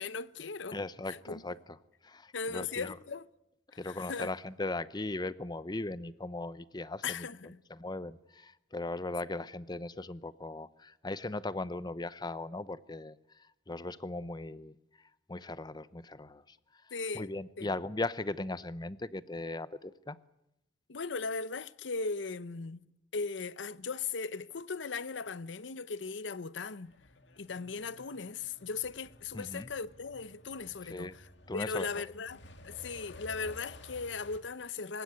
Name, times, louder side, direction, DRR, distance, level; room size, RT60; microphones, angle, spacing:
voice 1, 0.0-0.8 1.1-1.4 2.3-3.3 3.9-4.3 7.0-7.6 16.9-17.3 17.6-17.7 20.9-22.8 23.1-26.9 27.4-31.1 31.5-35.0, left 4 dB, 85° left, 0.8 m, -38 dB
voice 2, 0.7-1.8 2.0-3.0 3.8-14.8 15.3-20.2 29.3-29.7 30.8-31.2 31.5-32.0, left 2 dB, 25° left, 0.8 m, -38 dB
Truck, 26.8-34.4, left 1 dB, 70° left, 2.3 m, -54 dB
26.0 x 16.0 x 9.6 m
head